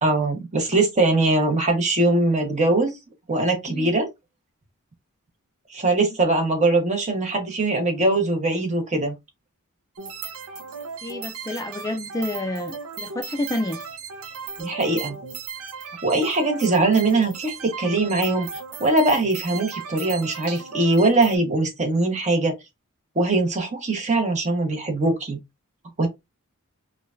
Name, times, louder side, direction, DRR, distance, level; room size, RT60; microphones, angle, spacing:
voice 1, 0.0-2.9 3.3-4.1 5.7-9.2 14.6-15.2 16.0-18.5 18.8-22.5 23.1-25.4 26.0-26.1, right 2 dB, 35° right, 1.1 m, -21 dB
sound 1, 10.0-21.4, right 6 dB, 75° right, 0.6 m, -36 dB
voice 2, 11.0-13.8, left 1 dB, 15° left, 0.4 m, -29 dB
4.8 x 2.3 x 2.5 m
head